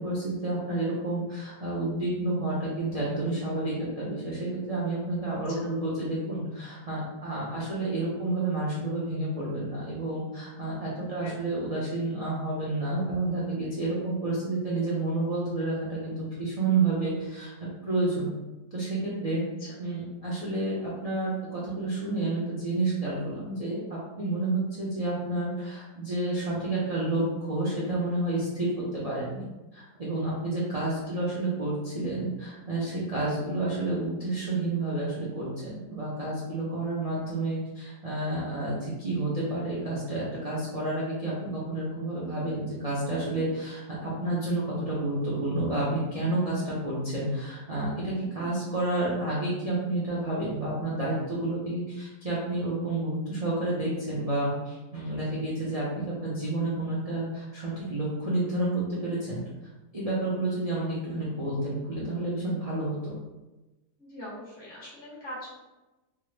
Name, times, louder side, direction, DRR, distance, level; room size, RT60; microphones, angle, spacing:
voice 1, 0.0-17.5 17.8-18.3 18.7-19.4 19.8-29.4 29.7-59.4 59.9-63.1, right 2 dB, 80° right, -8 dB, 0.3 m, -30 dB
voice 2, 11.0-11.4 19.6-19.7 31.1-31.2 48.4-48.5 64.0-65.6, left 1 dB, 35° left, -7 dB, 1.3 m, -43 dB
3.5 x 2.1 x 3.1 m, 1.1 s
omnidirectional pair, 1.8 m